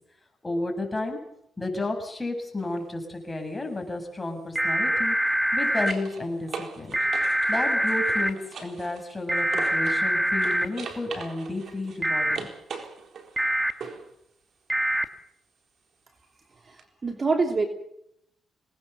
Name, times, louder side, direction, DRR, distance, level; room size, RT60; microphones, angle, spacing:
voice 1, 0.4-1.2 1.6-5.2 5.5-6.9 7.5-12.5, left 2 dB, 15° left, 3 dB, 7.5 m, -32 dB
opening paperbox, 2.6-2.8 5.1-10.1 10.4-14.1 16.8-16.9, right 5 dB, 55° right, 4.1 m, -41 dB
sound 1, 4.6-5.9 6.9-8.3 9.3-10.7 12.0-12.4 13.4-13.7 14.7-15.1, right 1 dB, 10° right, 2.0 m, -24 dB
voice 2, 16.6-17.7, right 4 dB, 35° right, 5 dB, 2.8 m, -26 dB
25.5 x 19.5 x 7.1 m, 0.75 s
cardioid pair, 90°, 0 cm